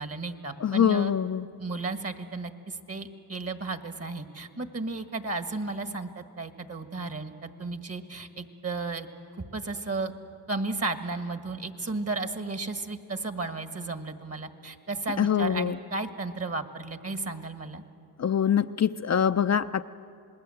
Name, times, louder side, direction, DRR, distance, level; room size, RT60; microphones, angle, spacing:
voice 1, 0.0-1.1 1.6-9.1 9.5-10.1 10.5-17.8, right 3 dB, 35° right, 9 dB, 1.7 m, -34 dB
voice 2, 0.6-1.5 15.2-15.8 18.2-19.8, left 8 dB, 45° left, 9 dB, 0.5 m, -24 dB
27.0 x 20.0 x 7.8 m, 2.6 s
cardioid pair, 60°, 39 cm